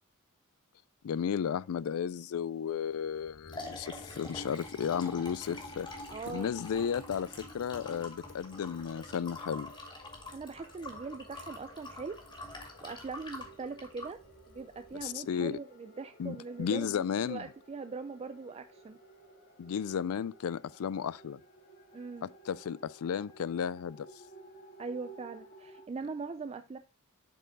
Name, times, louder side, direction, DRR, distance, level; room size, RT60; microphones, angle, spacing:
voice 1, 1.0-5.9 6.3-7.3 7.5-9.7 15.0-15.6 16.2-17.5 19.6-21.4 22.2-24.1, left 7 dB, 80° left, 0.4 m, -34 dB
Liquid, 3.2-15.1, left 2 dB, 20° left, 2.2 m, -46 dB
voice 2, 6.1-6.6 10.3-12.2 12.5-14.2 14.5-19.0 21.9-22.3 24.8-26.8, right 4 dB, 30° right, 0.4 m, -41 dB
sound 1, 8.4-25.9, right 2 dB, 45° left, 1.7 m, -56 dB
7.9 x 4.6 x 3.8 m
head